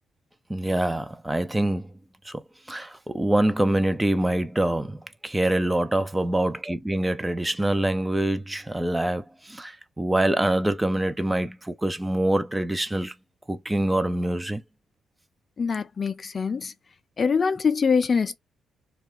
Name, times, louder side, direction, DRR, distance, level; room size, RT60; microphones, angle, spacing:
voice 1, 0.5-1.9 2.2-2.4 2.7-13.1 13.5-14.6, right 1 dB, 15° right, 0.5 m, -25 dB
voice 2, 15.6-16.7 17.2-18.4, left 5 dB, 45° left, 0.5 m, -24 dB
2.4 x 2.2 x 3.7 m
hypercardioid pair, 50°, 0 cm